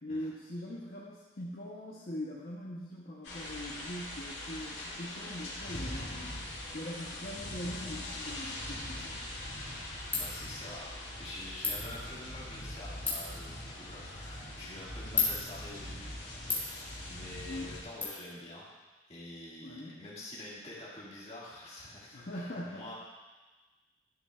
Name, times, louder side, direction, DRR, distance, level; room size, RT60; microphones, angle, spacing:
voice 1, 0.0-9.2 17.4-17.7 19.6-20.0 22.1-22.9, left 1 dB, 50° left, -5 dB, 0.9 m, -42 dB
sound 1, 3.2-17.8, left 1 dB, 70° left, 2.4 m, -42 dB
Ratchet pawl, 9.0-18.0, left 3 dB, 10° left, 1.9 m, -39 dB
voice 2, 10.2-10.9 11.2-16.2 17.1-18.7 19.1-23.0, left 1 dB, 35° left, -7 dB, 2.1 m, -46 dB
11.5 x 7.0 x 2.4 m, 1.2 s
head